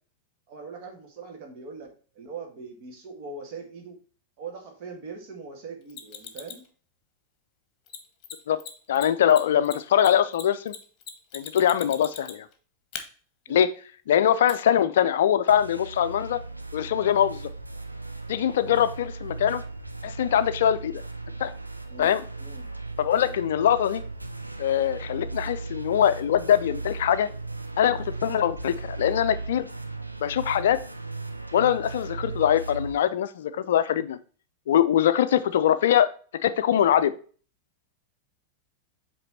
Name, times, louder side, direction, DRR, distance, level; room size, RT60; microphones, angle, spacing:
voice 1, 0.5-4.0 4.4-6.6 13.5-13.6 18.4-18.7 21.9-22.7 23.1-23.3, right 4 dB, 45° right, 2 dB, 1.8 m, -41 dB
Mechanisms, 5.9-6.7 7.9-8.0 8.2-8.3 8.6-8.7 8.9-12.5 12.9-13.0 14.5-14.6, left 9 dB, 35° left, 1.0 m, -39 dB
voice 2, 8.9-10.7 11.3-12.5 13.5-13.7 14.1-16.4 16.7-17.5 18.3-19.6 20.0-21.0 21.4-21.5 22.0-22.2 23.0-24.0 24.6-27.3 27.8-29.7 30.2-30.8 31.5-34.2 34.7-36.1 36.4-37.2, left 10 dB, 60° left, 13 dB, 0.4 m, -22 dB
sound 1, 15.5-32.9, right 3 dB, 85° right, 0.6 m, -37 dB
7.7 x 3.3 x 4.4 m, 0.40 s
figure-of-eight pair, 90°, 0 cm